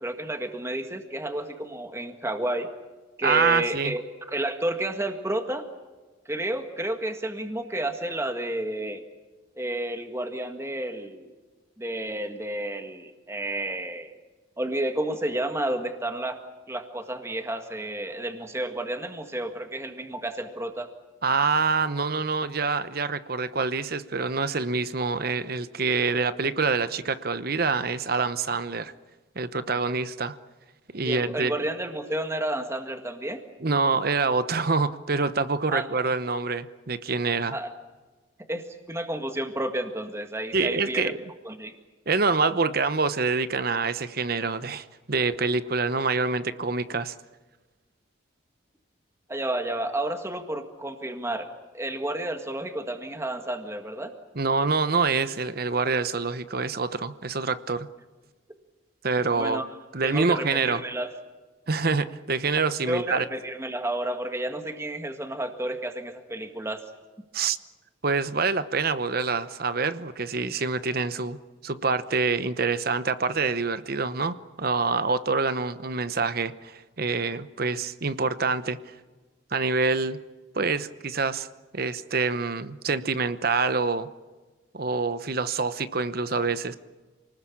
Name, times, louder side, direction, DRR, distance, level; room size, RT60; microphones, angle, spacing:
voice 1, 0.0-2.7 3.2-4.0 4.3-5.7 6.2-9.0 9.5-11.3 11.8-14.1 14.6-16.4 16.7-20.9 31.0-33.4 35.7-35.9 37.5-37.7 38.5-41.1 41.4-41.7 49.3-51.5 51.7-54.1 59.3-59.7 60.0-61.1 62.9-66.8, right 1 dB, 15° right, 6 dB, 1.8 m, -31 dB
voice 2, 3.2-3.9 21.2-28.9 29.4-30.4 30.9-31.5 33.6-37.5 40.5-41.2 42.1-47.1 54.4-57.9 59.0-59.6 59.9-60.8 61.7-63.2 67.3-67.6 68.0-78.8 79.5-80.2 80.5-81.5 81.7-84.1 84.7-86.8, right 4 dB, 50° right, 13 dB, 0.9 m, -26 dB
28.5 x 19.5 x 8.6 m, 1.3 s
head